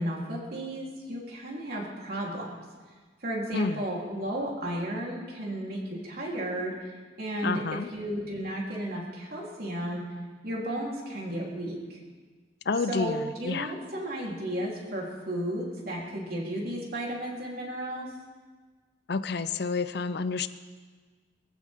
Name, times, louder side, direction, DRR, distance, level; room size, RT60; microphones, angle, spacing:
voice 1, 0.0-2.5 3.2-6.9 7.2-7.6 7.9-10.0 10.4-12.0 12.9-18.1, right 1 dB, 55° right, -3 dB, 3.6 m, -33 dB
voice 2, 7.4-7.9 12.7-13.7 19.1-20.5, left 4 dB, 60° left, 12 dB, 0.6 m, -29 dB
22.0 x 15.0 x 3.7 m, 1.4 s
head